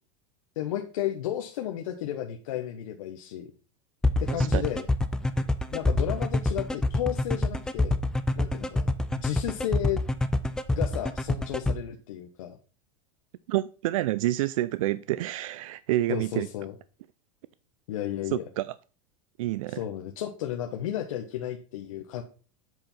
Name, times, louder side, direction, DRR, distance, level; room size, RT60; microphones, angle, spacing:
voice 1, 0.6-3.5 4.2-4.9 5.7-8.0 8.3-10.0 10.7-12.6 16.1-16.7 17.9-18.4 19.7-22.2, left 11 dB, 85° left, 1.0 m, -33 dB
sound 1, 4.0-11.7, left 2 dB, 5° left, 0.4 m, -25 dB
voice 2, 4.3-4.6 13.5-16.5 18.3-18.7 19.4-19.8, right 15 dB, 85° right, 0.4 m, -28 dB
7.8 x 4.5 x 5.5 m
supercardioid pair, 160°, 17 cm